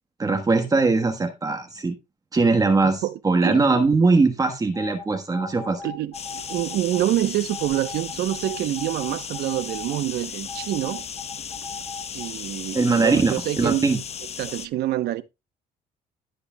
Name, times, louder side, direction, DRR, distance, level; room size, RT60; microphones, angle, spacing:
voice 1, 0.2-1.9 2.3-5.8 12.7-14.0, right 3 dB, 20° right, 1.3 m, -21 dB
voice 2, 2.8-3.7 5.8-11.0 12.1-13.8 14.4-15.2, right 14 dB, 75° right, 0.9 m, -26 dB
sound 1, 4.7-7.0 7.5-10.0 10.5-12.2, left 3 dB, 60° left, 6.1 m, -38 dB
sound 2, 6.1-14.7, left 7 dB, 40° left, 0.8 m, -36 dB
19.5 x 6.9 x 2.3 m
cardioid pair, 110°, 17 cm